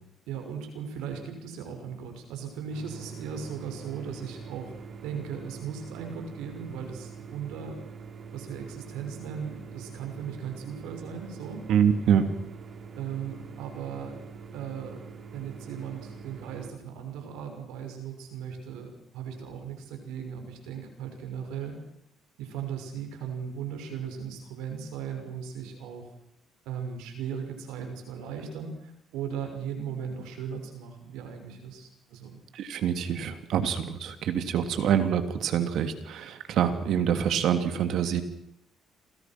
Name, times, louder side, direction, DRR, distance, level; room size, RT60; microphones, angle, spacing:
voice 1, 0.3-7.9 8.3-11.7 13.0-14.2 14.5-15.0 15.3-21.8 22.4-26.1 26.6-32.4, right 7 dB, 85° right, 5 dB, 6.2 m, -37 dB
sound 1, 2.7-16.7, right 5 dB, 45° right, 4.7 m, -44 dB
voice 2, 11.7-12.3 32.5-38.2, right 8 dB, 70° right, 9 dB, 3.1 m, -26 dB
28.0 x 24.0 x 6.2 m, 0.77 s
supercardioid pair, 80°, 0 cm